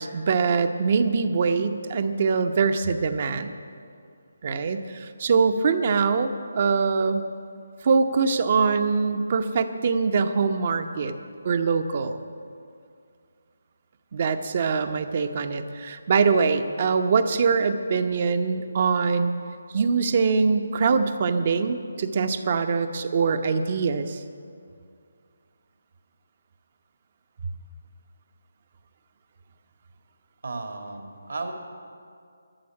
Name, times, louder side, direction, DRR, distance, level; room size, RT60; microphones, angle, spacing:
voice 1, 0.0-3.5 4.4-7.2 7.8-11.1 11.4-12.2 14.1-19.3 19.7-24.2, right 5 dB, 45° right, 8 dB, 0.8 m, -23 dB
voice 2, 30.4-31.5, right 3 dB, 70° right, 4 dB, 2.0 m, -34 dB
13.0 x 7.1 x 9.8 m, 2.3 s
figure-of-eight pair, 155°, 0 cm